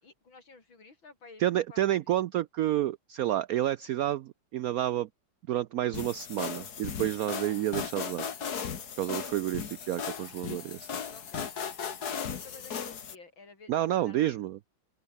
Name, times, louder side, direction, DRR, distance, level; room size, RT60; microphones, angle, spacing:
voice 1, 0.0-1.4 1.7-1.8 10.9-11.5 12.0-13.7 14.0-14.3, left 3 dB, 80° left, 5.3 m, -52 dB
voice 2, 1.4-5.1 5.5-8.3 9.0-10.9 13.7-14.6, right 13 dB, 85° right, 0.7 m, -29 dB
sound 1, 5.9-13.1, left 7 dB, 55° left, 2.0 m, -37 dB
open air
omnidirectional pair, 2.1 m